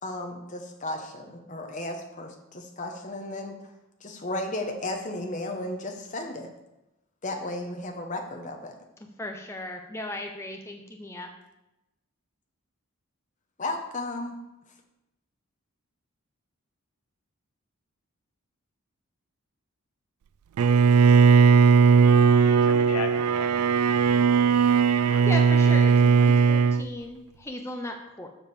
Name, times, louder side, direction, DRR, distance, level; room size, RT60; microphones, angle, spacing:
voice 1, 0.0-3.6 4.0-6.5 7.2-8.7 13.6-14.4, left 2 dB, 35° left, 3 dB, 1.0 m, -34 dB
voice 2, 9.2-11.3 25.3-28.3, left 2 dB, 10° left, 3 dB, 0.6 m, -36 dB
Bowed string instrument, 20.6-26.8, right 6 dB, 80° right, 0.3 m, -18 dB
voice 3, 22.4-24.2 25.0-25.3 25.6-25.8, left 5 dB, 85° left, 6 dB, 1.1 m, -38 dB
7.3 x 5.2 x 6.8 m, 0.95 s
head